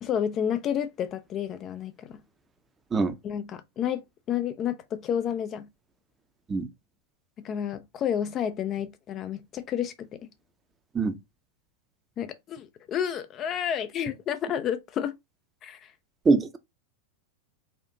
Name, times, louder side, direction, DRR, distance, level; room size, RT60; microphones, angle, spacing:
voice 1, 0.0-2.2 3.2-4.0 4.3-5.7 7.4-10.2 12.2-15.2 15.6-15.9, left 9 dB, 30° left, 0.3 m, -30 dB
voice 2, 16.3-16.6, right 4 dB, 15° right, 0.6 m, -22 dB
4.3 x 2.4 x 2.6 m
figure-of-eight pair, 90°, 0 cm